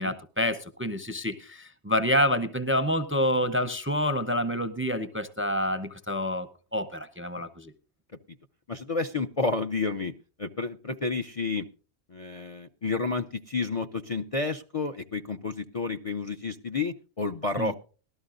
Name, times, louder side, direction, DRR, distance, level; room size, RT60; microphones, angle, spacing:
voice 1, 0.0-7.7 17.6-17.7, left 1 dB, 15° right, 11 dB, 0.6 m, -28 dB
voice 2, 8.7-10.1 10.4-11.7 12.1-17.7, left 4 dB, 40° left, 5 dB, 0.6 m, -30 dB
19.0 x 13.0 x 2.5 m, 0.37 s
omnidirectional pair, 1.2 m